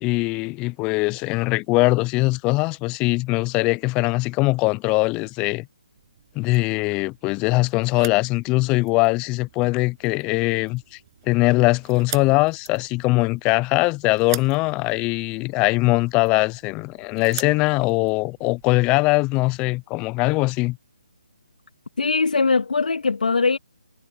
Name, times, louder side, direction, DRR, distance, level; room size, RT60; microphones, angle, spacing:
voice 1, 0.0-5.7 6.4-11.0 11.3-20.8, left 23 dB, 20° left, 0.6 m, -21 dB
sound 1, 5.9-18.8, right 16 dB, 30° right, 7.0 m, -43 dB
voice 2, 22.0-23.6, left 4 dB, 70° left, 2.7 m, -21 dB
figure-of-eight pair, 150°, 5 cm